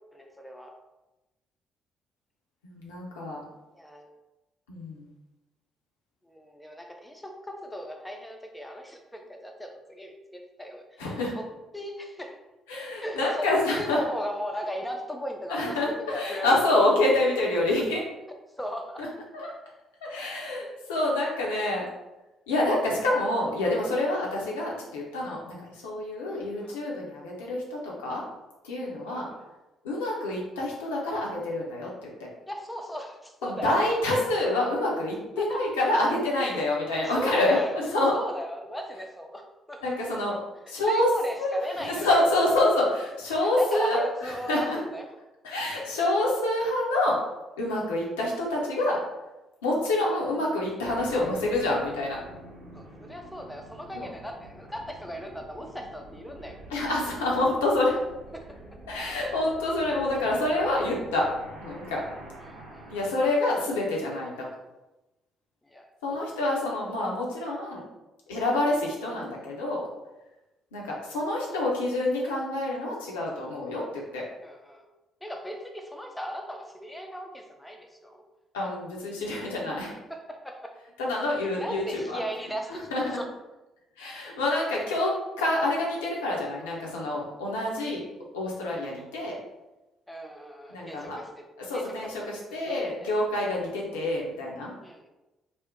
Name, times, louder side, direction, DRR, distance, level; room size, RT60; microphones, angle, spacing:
voice 1, 0.1-0.7 3.7-4.1 6.2-11.0 11.4-11.5 11.7-12.4 13.0-13.5 13.8-16.6 18.6-19.0 26.3-26.8 29.1-29.5 32.5-33.8 35.4-35.7 36.5-36.6 37.1-37.9 38.1-40.0 40.9-42.1 43.6-45.0 52.7-56.6 58.3-58.6 62.4-63.0 65.6-66.2 74.4-74.9 75.2-78.2 80.1-80.8 81.6-83.3 90.1-93.1 94.8-95.1, equal, 10° left, 3 dB, 0.5 m, -37 dB
voice 2, 2.6-3.4 4.7-5.1 11.0-11.3 12.7-14.0 15.5-18.0 19.0-19.1 19.3-19.5 20.0-21.8 22.5-28.2 28.6-29.3 29.8-31.9 33.4-38.2 39.8-40.4 40.7-41.1 41.4-44.8 45.4-47.2 47.6-49.0 49.6-52.2 53.9-54.1 56.7-57.9 58.9-61.2 61.6-62.0 62.9-64.5 66.0-67.8 68.3-69.9 70.7-74.2 78.5-79.9 81.0-82.2 82.7-83.2 84.0-88.0 88.3-89.4 90.7-91.2 91.7-94.7, left 1 dB, 75° left, -3 dB, 0.6 m, -27 dB
sound 1, 50.8-63.1, right 2 dB, 65° right, 0.7 m, -47 dB
2.5 x 2.1 x 3.6 m, 1.0 s
figure-of-eight pair, 45°, 0 cm